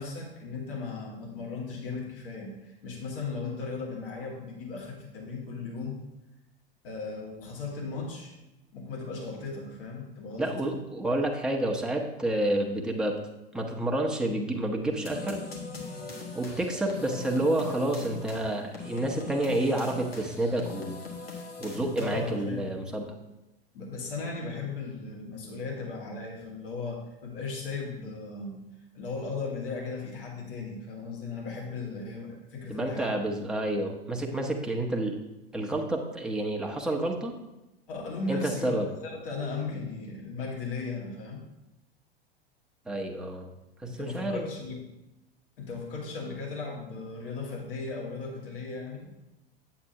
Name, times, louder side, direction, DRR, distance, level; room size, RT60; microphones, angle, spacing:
voice 1, 0.0-6.0 6.8-8.3 8.7-10.8 22.0-22.7 23.7-28.6 28.9-33.1 33.4-33.5 37.9-41.4 43.9-44.8 45.6-49.1, left 4 dB, 65° left, -1 dB, 2.2 m, -36 dB
voice 2, 10.4-13.2 13.5-15.4 16.3-20.9 21.6-23.1 32.7-35.2 35.5-37.3 38.3-38.9 42.9-43.5 43.8-44.4, right 1 dB, 5° right, 0 dB, 0.9 m, -29 dB
sound 1, 15.1-22.4, left 3 dB, 80° left, 1.7 m, -41 dB
8.6 x 7.6 x 2.9 m, 0.96 s
figure-of-eight pair, 85°, 30 cm